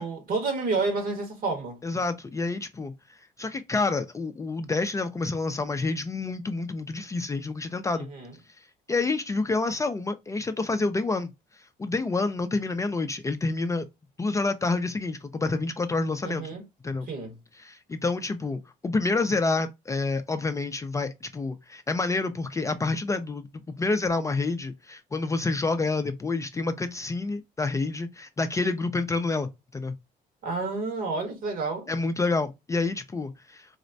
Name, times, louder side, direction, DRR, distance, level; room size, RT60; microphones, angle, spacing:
voice 1, 0.0-1.8 8.1-8.3 16.2-16.6 17.1-17.3 30.4-31.9, right 3 dB, 60° right, 1.4 m, -30 dB
voice 2, 1.8-8.1 8.9-13.9 14.2-16.5 16.8-17.1 17.6-23.5 23.8-29.9 31.9-33.8, left 3 dB, 20° left, 0.4 m, -28 dB
4.1 x 2.1 x 2.5 m
cardioid pair, 110°, 17 cm